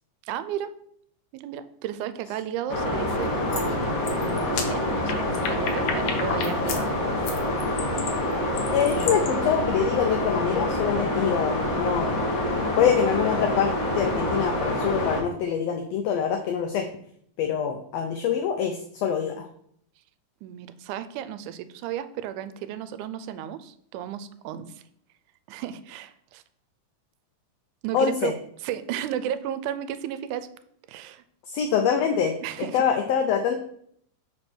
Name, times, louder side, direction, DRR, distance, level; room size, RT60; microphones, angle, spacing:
voice 1, 0.2-0.7 1.3-4.0 4.5-7.2 20.4-24.8 25.5-26.4 27.8-28.3 28.6-30.5 30.9-31.2 32.4-32.8, right 10 dB, 85° right, 13 dB, 2.0 m, -34 dB
sound 1, 2.7-15.2, left 1 dB, 50° left, 1.0 m, -26 dB
sound 2, 3.1-3.2 3.5-3.7 4.0-6.8 7.2-9.3, left 6 dB, 70° left, 1.4 m, -32 dB
voice 2, 8.7-12.3 12.7-16.9 17.4-19.5 27.9-28.3 31.5-32.3 32.7-33.5, left 7 dB, 85° left, 5 dB, 1.4 m, -25 dB
4.9 x 4.4 x 6.0 m, 0.67 s
omnidirectional pair, 3.5 m